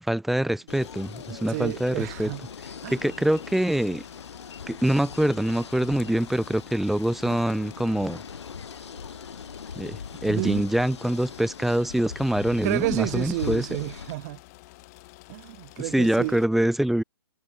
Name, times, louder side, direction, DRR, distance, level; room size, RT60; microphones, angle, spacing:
voice 1, 0.0-2.3 2.9-4.0 4.7-8.2 9.8-13.7 15.8-17.0, right 1 dB, ahead, 0.5 m, -25 dB
sound 1, 0.7-14.1, left 6 dB, 80° left, 0.8 m, -40 dB
sound 2, 0.8-16.5, left 23 dB, 35° left, 2.0 m, -50 dB
voice 2, 1.3-2.4 2.8-3.0 10.3-10.6 12.6-14.4 15.3-16.4, right 21 dB, 35° right, 1.5 m, -30 dB
figure-of-eight pair, 125°, 14 cm